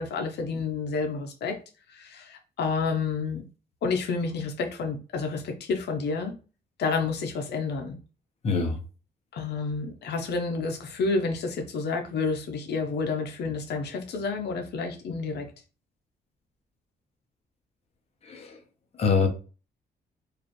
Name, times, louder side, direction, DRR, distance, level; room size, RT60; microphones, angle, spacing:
voice 1, 0.0-1.6 1.9-3.4 3.8-6.3 6.8-8.0 9.3-15.5, left 4 dB, 75° left, 3 dB, 0.8 m, -29 dB
voice 2, 8.4-8.8 18.3-18.6 19.0-19.3, left 5 dB, 35° left, 2 dB, 0.9 m, -24 dB
4.8 x 2.5 x 3.0 m, 0.34 s
wide cardioid pair, 165°, 17 cm